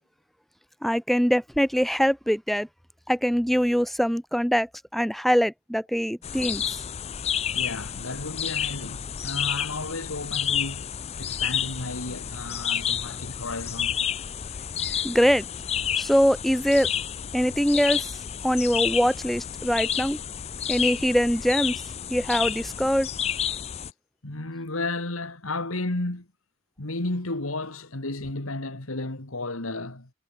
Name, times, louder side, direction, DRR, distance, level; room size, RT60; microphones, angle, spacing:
voice 1, 0.8-2.7 3.1-6.8 14.8-15.4 16.0-16.9 17.3-18.1 18.4-20.2 20.7-21.7 22.1-23.1, equal, ahead, 0.7 m, -23 dB
sound 1, 6.2-23.9, left 9 dB, 30° left, 0.4 m, -30 dB
voice 2, 7.5-14.1 24.2-26.3 26.8-30.1, left 2 dB, 75° left, 2.6 m, -33 dB
head